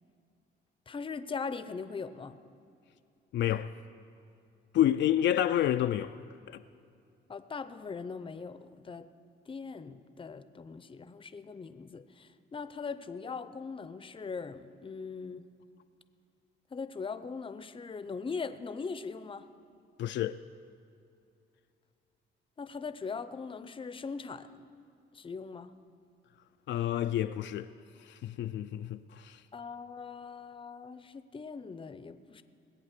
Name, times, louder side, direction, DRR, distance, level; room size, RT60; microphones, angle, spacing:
voice 1, 0.9-2.4 7.3-9.1 9.5-15.4 16.7-19.5 22.6-24.7 25.1-25.7 29.5-32.4, left 5 dB, 25° left, 0.6 m, -40 dB
voice 2, 3.3-3.7 4.7-6.2 6.5-6.6 20.0-20.4 26.7-27.7 28.0-29.4, left 11 dB, 65° left, 0.4 m, -29 dB
20.5 x 8.3 x 6.6 m
cardioid pair, 90°, 20 cm